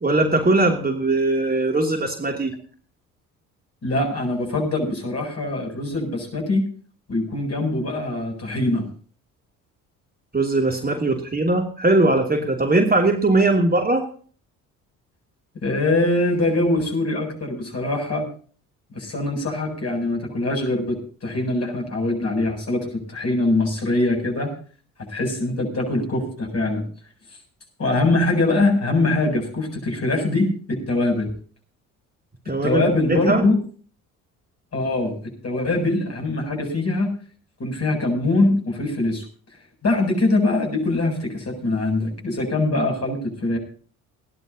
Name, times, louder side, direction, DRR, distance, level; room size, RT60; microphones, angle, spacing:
voice 1, 0.0-2.5 10.3-14.0 32.5-33.4, right 2 dB, 20° right, 2 dB, 2.9 m, -20 dB
voice 2, 3.8-6.6 7.1-8.9 15.5-18.3 18.9-24.5 25.1-26.8 27.8-31.3 32.6-33.6 34.7-35.1 35.4-37.1 37.6-39.2 39.8-43.6, left 2 dB, 35° left, 2 dB, 7.9 m, -23 dB
29.5 x 11.0 x 2.9 m, 0.42 s
figure-of-eight pair, 50°, 43 cm